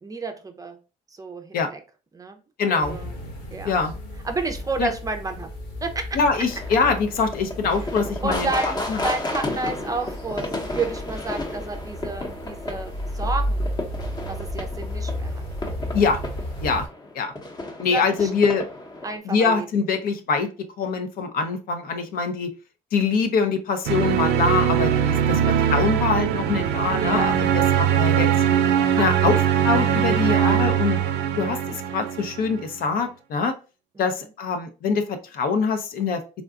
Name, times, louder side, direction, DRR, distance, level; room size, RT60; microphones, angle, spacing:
voice 1, 0.0-0.8 1.1-1.8 2.1-3.1 3.5-3.8 4.2-5.5 5.8-6.1 7.8-8.0 8.2-13.7 14.3-15.4 15.9-16.1 16.6-16.8 17.9-18.3 19.0-19.7 26.9-27.4 29.0-29.5 30.2-30.6 34.0-34.3, right 3 dB, 20° right, 5 dB, 0.5 m, -31 dB
voice 2, 2.6-3.0 3.6-3.9 4.8-4.9 6.1-8.5 8.9-9.0 15.9-16.2 16.6-16.9 17.1-17.3 17.8-18.7 19.3-20.5 20.8-22.5 22.9-28.3 29.0-31.0 31.3-33.5 34.0-36.2, left 5 dB, 60° left, 7 dB, 0.6 m, -24 dB
sound 1, 2.8-16.9, equal, 85° left, 1.5 m, -33 dB
sound 2, 6.5-19.2, left 2 dB, 25° left, 0.8 m, -33 dB
sound 3, 23.9-32.7, right 9 dB, 90° right, 0.5 m, -21 dB
3.7 x 2.2 x 2.4 m, 0.32 s
cardioid pair, 110°, 17 cm